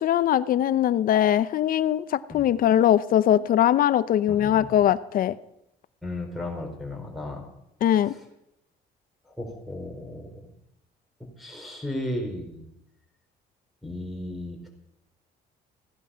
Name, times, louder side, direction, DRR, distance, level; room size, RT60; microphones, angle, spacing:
voice 1, 0.0-5.4 7.8-8.1, left 11 dB, 60° left, 16 dB, 0.7 m, -21 dB
voice 2, 4.3-4.7 6.0-7.4 8.1-8.2 9.3-10.4 11.4-12.7 13.8-14.7, left 1 dB, ahead, 2 dB, 4.3 m, -35 dB
16.0 x 11.0 x 5.8 m, 0.82 s
cardioid pair, 110°, 17 cm